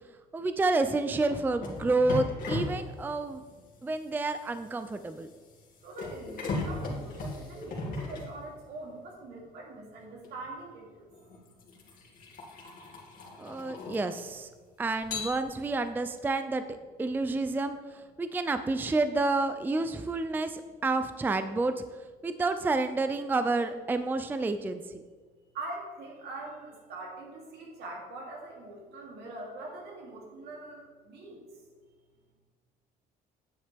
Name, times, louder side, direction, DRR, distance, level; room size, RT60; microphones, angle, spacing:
voice 1, 0.3-3.4 3.8-5.3 13.4-14.5 14.8-16.6 17.0-21.8 22.2-24.8, right 3 dB, 10° right, 10 dB, 0.4 m, -29 dB
sound 1, 1.3-8.9 10.2-10.4 11.1-14.5 15.0-15.9, left 2 dB, 55° left, 2.4 m, -38 dB
voice 2, 5.8-11.1 25.5-31.4, right 2 dB, 75° right, -2 dB, 2.8 m, -43 dB
9.6 x 7.8 x 3.4 m, 1.5 s
cardioid pair, 110°, 17 cm